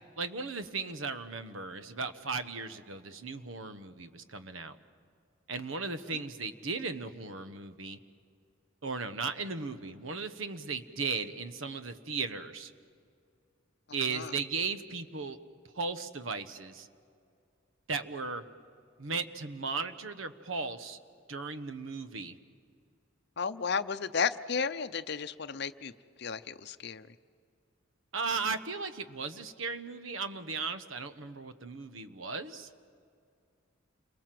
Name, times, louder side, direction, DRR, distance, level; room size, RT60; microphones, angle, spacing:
voice 1, 0.2-4.8 5.5-8.0 8.8-12.7 13.9-15.4 15.7-16.9 17.9-18.4 19.0-21.0 21.3-22.4 28.1-32.7, right 4 dB, 90° right, 11 dB, 1.2 m, -36 dB
voice 2, 23.4-25.9 26.2-27.2, left 5 dB, 55° left, 11 dB, 0.7 m, -33 dB
28.5 x 23.0 x 7.7 m, 2.3 s
head